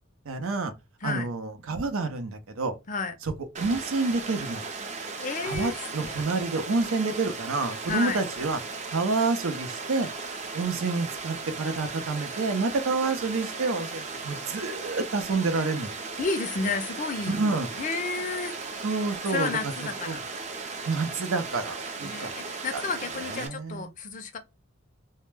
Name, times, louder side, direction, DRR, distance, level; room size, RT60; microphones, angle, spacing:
voice 1, 0.3-0.7 1.0-2.7 3.2-4.6 5.4-8.6 8.9-10.1 10.5-15.9 17.3-17.7 18.8-19.7 20.1-20.2 20.9-21.7 22.0-22.3 22.7-22.8 23.2-23.9, right 3 dB, 80° right, 0.6 m, -28 dB
Water, 3.5-23.5, right 4 dB, 35° right, 0.4 m, -37 dB
voice 2, 5.2-5.7 6.0-6.1 6.4-6.7 7.9-8.2 16.2-17.5 17.8-18.6 19.3-20.2 22.0-24.4, left 4 dB, 40° left, 0.4 m, -31 dB
2.1 x 2.1 x 3.1 m
head